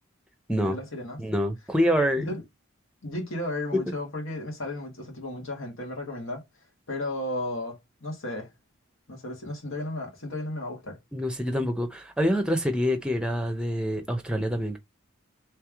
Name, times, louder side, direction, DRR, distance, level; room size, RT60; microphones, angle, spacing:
voice 1, 0.6-1.2 2.2-2.4 3.0-6.4 6.9-8.5 9.1-11.0, left 1 dB, 85° left, 1.8 m, -34 dB
voice 2, 1.2-2.3 11.1-14.8, equal, 5° right, 0.7 m, -26 dB
3.4 x 3.2 x 3.4 m
head